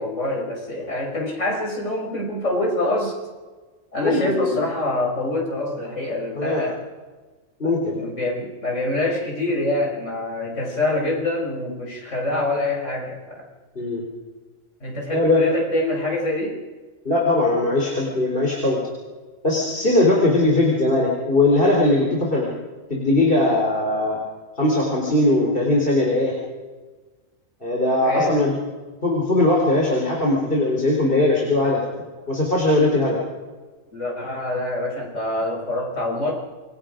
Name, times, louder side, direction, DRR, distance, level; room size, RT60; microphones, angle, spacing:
voice 1, 0.0-3.2 3.9-6.8 7.6-13.5 14.8-16.6 28.0-28.5 33.9-36.3, left 2 dB, 65° left, -1 dB, 6.3 m, -25 dB
voice 2, 4.0-4.6 6.3-6.6 7.6-8.0 13.8-14.0 15.1-15.4 17.0-18.8 19.4-22.5 22.9-24.2 24.6-26.3 27.6-28.5 29.0-31.8 32.3-33.2, left 2 dB, 40° left, -2 dB, 4.2 m, -20 dB
28.0 x 23.5 x 5.2 m, 1.3 s
omnidirectional pair, 1.4 m